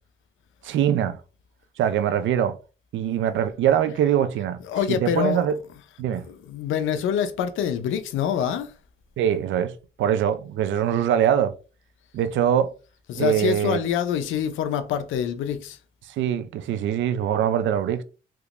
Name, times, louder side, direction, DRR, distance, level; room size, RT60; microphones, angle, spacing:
voice 1, 0.6-1.2 1.8-2.6 2.9-4.6 4.9-5.6 6.0-6.3 9.2-11.5 12.1-12.7 13.1-13.8 16.0-18.0, right 9 dB, 70° right, 0.5 m, -23 dB
voice 2, 4.6-5.4 6.3-8.7 13.1-15.8, left 8 dB, 80° left, 0.5 m, -26 dB
3.4 x 2.9 x 2.4 m
cardioid pair, 90°, 20 cm